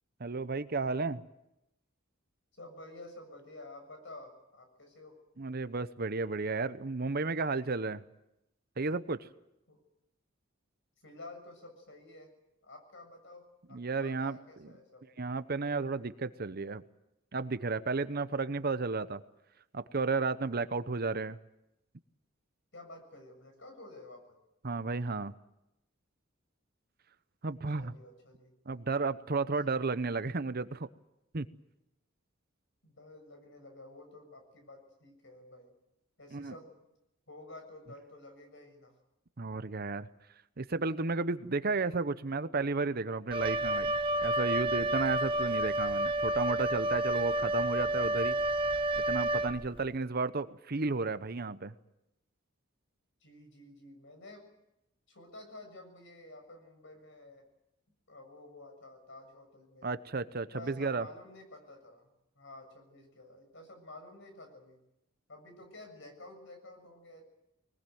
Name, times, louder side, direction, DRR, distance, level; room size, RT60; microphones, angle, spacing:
voice 1, 0.2-1.2 5.4-8.0 8.8-9.3 13.7-14.7 15.2-16.8 17.3-19.2 19.7-21.4 24.6-25.3 27.4-27.9 28.7-30.9 31.3-31.5 36.3-36.5 39.4-40.1 40.6-48.4 49.0-51.7 59.8-61.1, right 3 dB, 45° right, 13 dB, 0.9 m, -33 dB
voice 2, 2.5-5.2 9.7-9.8 11.0-12.3 12.6-15.1 22.7-24.3 27.5-28.5 32.8-35.7 36.2-36.8 37.3-39.0 53.2-54.5 55.1-57.4 58.1-59.9 60.5-62.1 62.4-64.8 65.3-67.2, left 2 dB, 60° left, 5 dB, 7.1 m, -51 dB
Wind instrument woodwind instrument, 43.3-49.9, right 1 dB, 25° right, 1.0 m, -30 dB
22.0 x 20.0 x 9.3 m, 0.88 s
head